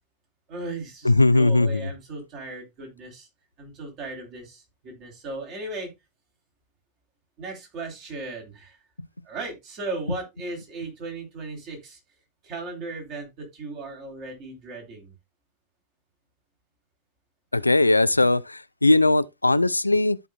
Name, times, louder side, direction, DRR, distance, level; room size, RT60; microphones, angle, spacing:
voice 1, 0.5-3.3 3.6-5.9 7.4-8.8 9.3-12.0 12.4-15.1, right 2 dB, 40° right, 3.4 m, -36 dB
voice 2, 1.0-1.8 17.5-20.2, left 2 dB, 85° left, 0.3 m, -19 dB
13.5 x 4.9 x 2.3 m
figure-of-eight pair, 90°, 0 cm